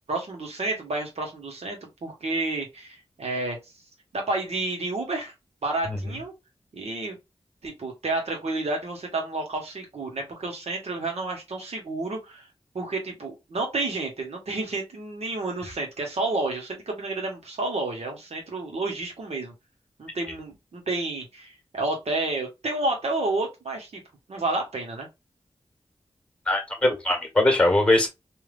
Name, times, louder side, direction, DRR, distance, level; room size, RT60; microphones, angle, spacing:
voice 1, 0.1-3.6 4.1-5.3 5.6-6.3 6.7-7.2 7.6-12.4 12.7-19.5 20.0-24.0 24.3-25.1, right 2 dB, 75° right, 1.3 m, -30 dB
voice 2, 26.5-28.1, left 1 dB, 10° left, 1.5 m, -21 dB
3.4 x 2.8 x 2.4 m
wide cardioid pair, 65°, 11 cm